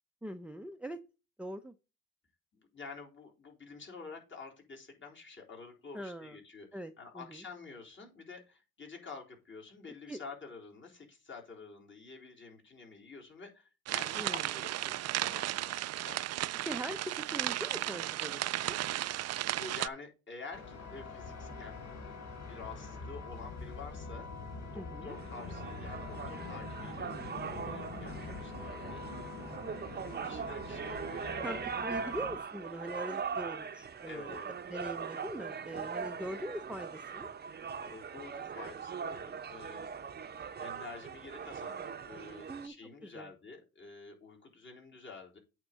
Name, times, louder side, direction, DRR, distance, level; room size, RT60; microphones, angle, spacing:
voice 1, 0.2-1.0 1.4-1.7 5.9-6.4 6.7-7.4 10.1-10.2 14.1-14.5 16.7-18.8 24.7-25.2 31.4-34.4 34.7-37.3 42.5-42.7 43.0-43.3, right 1 dB, 5° right, 8 dB, 0.7 m, -42 dB
voice 2, 2.5-16.2 19.5-21.8 22.5-24.3 24.7-29.2 30.1-31.6 32.0-32.1 34.1-34.5 37.8-40.2 40.6-45.4, left 4 dB, 40° left, 0 dB, 3.7 m, -49 dB
sound 1, 13.9-19.9, right 14 dB, 60° right, 0.4 m, -34 dB
sound 2, 20.5-32.4, left 3 dB, 65° left, 3.8 m, -44 dB
sound 3, 25.1-42.7, right 6 dB, 35° right, 0.8 m, -41 dB
8.7 x 3.8 x 6.9 m, 0.29 s
cardioid pair, 90°, 30 cm